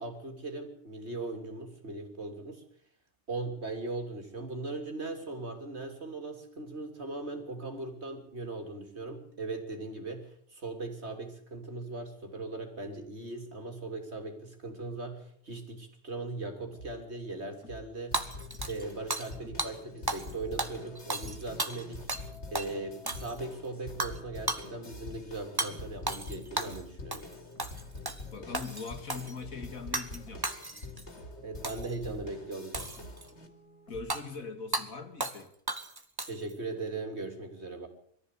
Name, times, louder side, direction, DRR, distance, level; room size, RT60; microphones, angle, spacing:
voice 1, 0.0-2.6 3.3-18.3 18.7-22.1 22.5-27.3 31.4-32.9 36.3-37.9, right 2 dB, 45° right, 4 dB, 3.6 m, -39 dB
sound 1, 16.3-18.0 18.5-21.8 22.1-32.6 33.0-34.6, right 1 dB, 85° left, 3.8 m, -52 dB
sound 2, 18.1-33.5, left 3 dB, 50° left, 3.0 m, -46 dB
Hammer / Shatter, 18.1-19.3 19.6-19.7 20.1-20.3 20.6-22.3 22.5-22.7 23.1-23.5 24.0-24.2 24.5-24.7 25.6-25.7 26.1-26.8 27.1-27.3 27.6-28.2 28.5-29.3 29.9-30.2 30.4-31.0 31.6-31.9 32.7-33.3 34.1-34.2 34.7-34.9 35.2-35.4 35.7-36.5, right 2 dB, 15° right, 1.3 m, -34 dB
voice 2, 28.3-30.5 33.9-35.5, left 4 dB, 70° left, 6 dB, 2.7 m, -41 dB
22.5 x 14.5 x 8.4 m, 0.64 s
omnidirectional pair, 1.5 m